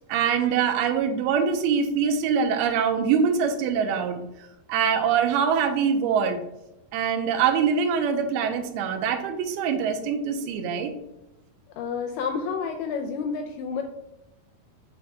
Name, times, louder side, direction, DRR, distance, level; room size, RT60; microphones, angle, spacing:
voice 1, 0.1-4.2 4.7-6.4 6.9-10.9, right 6 dB, 90° right, 7 dB, 2.6 m, -24 dB
voice 2, 11.8-13.8, left 5 dB, 80° left, 4 dB, 2.0 m, -29 dB
6.3 x 3.5 x 4.7 m, 0.92 s
omnidirectional pair, 4.4 m